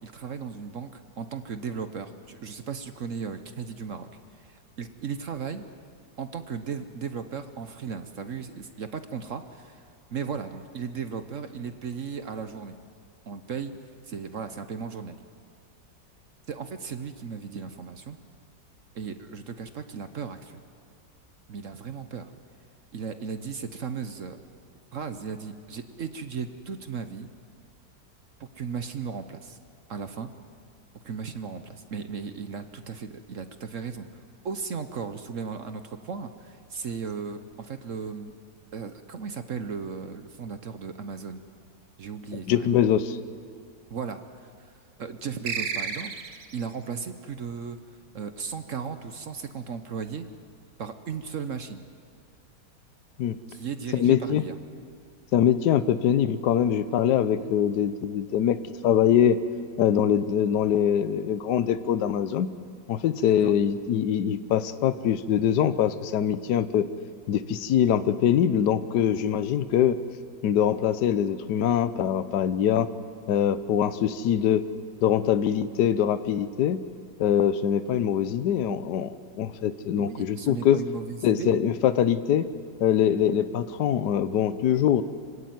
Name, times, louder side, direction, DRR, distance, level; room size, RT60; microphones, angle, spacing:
voice 1, 0.0-5.7 6.2-9.8 10.1-12.8 13.3-13.7 14.0-15.2 16.5-18.2 18.9-20.6 21.5-22.3 22.9-24.4 24.9-27.3 28.4-29.6 29.9-30.3 31.0-34.1 34.4-38.3 38.7-41.4 42.0-42.8 43.9-44.7 45.0-47.8 48.1-50.3 50.8-51.8 53.5-54.5 63.2-63.5 80.0-81.6, right 6 dB, 55° right, 9 dB, 1.1 m, -36 dB
voice 2, 42.5-43.2 53.2-53.4 53.9-54.4 55.3-58.6 58.8-59.4 59.8-62.5 62.9-66.9 67.3-70.0 70.4-72.9 73.3-74.6 75.0-76.8 77.2-80.8 81.2-82.5 82.8-85.0, left 9 dB, 70° left, 13 dB, 1.4 m, -23 dB
sound 1, 45.5-46.6, right 6 dB, 80° right, 1.9 m, -31 dB
26.0 x 17.0 x 9.4 m, 2.2 s
omnidirectional pair, 1.9 m